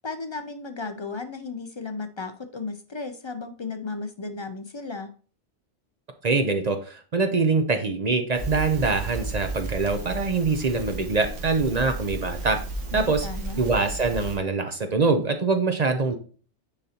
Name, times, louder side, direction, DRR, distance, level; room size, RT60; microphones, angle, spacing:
voice 1, 0.0-5.1 12.9-13.6, left 4 dB, 50° left, 8 dB, 0.3 m, -35 dB
voice 2, 6.2-12.6 12.9-13.3 13.6-16.2, right 4 dB, 45° right, 6 dB, 0.6 m, -24 dB
Crackle, 8.3-14.4, right 2 dB, 85° right, 1.5 m, -34 dB
9.8 x 4.0 x 2.8 m, 0.40 s
omnidirectional pair, 1.2 m